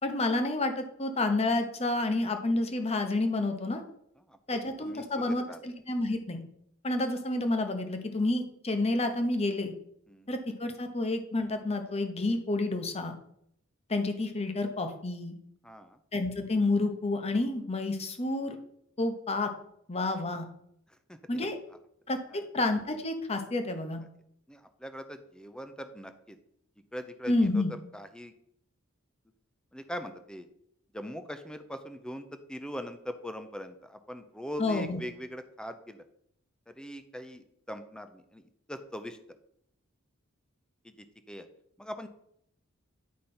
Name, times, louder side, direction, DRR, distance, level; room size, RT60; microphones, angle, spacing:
voice 1, 0.0-3.8 4.5-6.4 6.8-9.7 10.3-13.1 13.9-15.4 16.1-18.6 19.0-19.5 19.9-20.5 21.3-21.6 22.1-22.2 22.5-24.0 27.3-27.7 34.6-35.0, left 2 dB, 30° left, 6 dB, 1.0 m, -29 dB
voice 2, 4.3-5.6 10.1-10.3 15.6-16.0 21.1-21.5 22.3-22.4 24.5-26.4 26.9-28.3 29.7-30.5 30.9-36.1 36.7-39.2 40.8-41.5 41.8-42.1, equal, 5° left, 9 dB, 0.6 m, -42 dB
9.6 x 5.1 x 4.3 m, 0.72 s
head